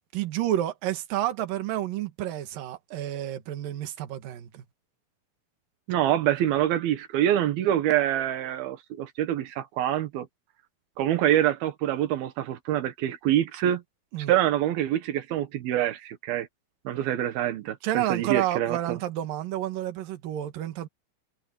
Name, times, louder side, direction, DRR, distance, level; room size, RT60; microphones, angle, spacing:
voice 1, 0.1-4.6 14.1-14.3 17.8-20.9, right 13 dB, 70° right, 3.3 m, -30 dB
voice 2, 5.9-10.3 11.0-13.8 14.3-16.5 16.8-19.0, right 12 dB, 90° right, 3.2 m, -25 dB
omnidirectional pair, 4.2 m